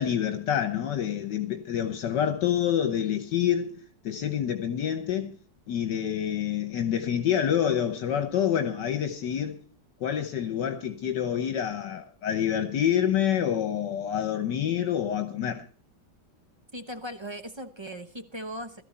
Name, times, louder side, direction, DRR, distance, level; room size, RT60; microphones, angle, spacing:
voice 1, 0.0-3.8 4.0-5.3 5.7-9.6 10.0-15.6, left 9 dB, 75° left, 1.6 m, -27 dB
voice 2, 16.7-18.8, equal, 45° right, 0.3 m, -38 dB
17.5 x 13.5 x 4.3 m
omnidirectional pair, 1.9 m